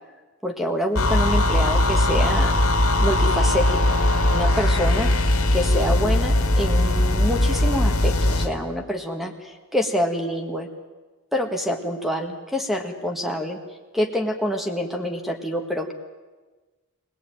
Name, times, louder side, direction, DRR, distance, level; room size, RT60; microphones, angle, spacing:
voice 1, 0.4-2.6 3.0-4.0 4.3-5.1 5.5-10.7 11.3-13.6 13.9-15.9, equal, ahead, 4 dB, 1.6 m, -26 dB
sound 1, 1.0-8.5, left 1 dB, 75° left, 2.1 m, -20 dB
24.0 x 18.0 x 9.1 m, 1.3 s
head